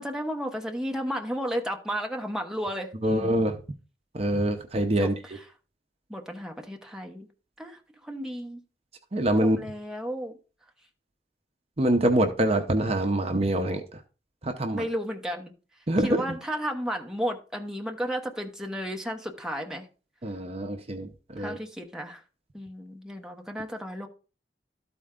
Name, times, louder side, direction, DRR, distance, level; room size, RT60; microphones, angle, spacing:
voice 1, 0.0-3.4 5.0-5.1 6.1-7.3 7.6-8.6 9.4-10.4 14.7-15.5 16.0-19.9 21.4-22.2 22.5-24.1, equal, 5° right, 2 dB, 1.0 m, -33 dB
voice 2, 3.0-3.6 4.1-5.1 9.1-9.6 11.8-13.8 14.4-14.8 15.9-16.3 20.2-21.6, right 1 dB, 35° right, 6 dB, 0.7 m, -25 dB
13.0 x 4.3 x 3.7 m, 0.35 s
head